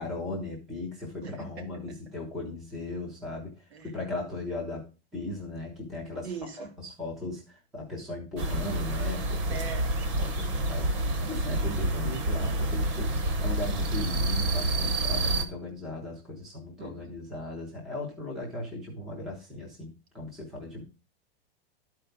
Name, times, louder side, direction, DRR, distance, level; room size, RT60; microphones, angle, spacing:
voice 1, 0.0-3.5 3.8-4.9 5.1-6.3 6.6-9.6 10.2-20.8, left 2 dB, ahead, -1 dB, 0.3 m, -37 dB
voice 2, 1.2-1.7 3.7-3.9 6.2-6.7 9.5-9.9 16.8-17.1, right 5 dB, 90° right, 5 dB, 2.5 m, -40 dB
sound 1, 8.4-15.5, right 1 dB, 30° right, 0.9 m, -28 dB
11.5 x 4.4 x 5.0 m, 0.32 s
supercardioid pair, 180°, 31 cm